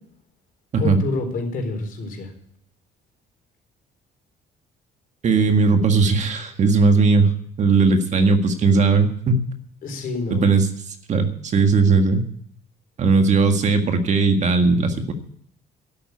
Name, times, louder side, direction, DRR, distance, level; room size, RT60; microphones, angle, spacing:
voice 1, 0.8-2.3 9.8-10.5, left 3 dB, 55° left, 4 dB, 4.0 m, -27 dB
voice 2, 5.2-7.3 7.6-9.5 10.3-12.2 13.0-15.1, right 4 dB, 45° right, 6 dB, 1.8 m, -18 dB
11.5 x 8.8 x 9.5 m, 0.65 s
cardioid pair, 110°, 17 cm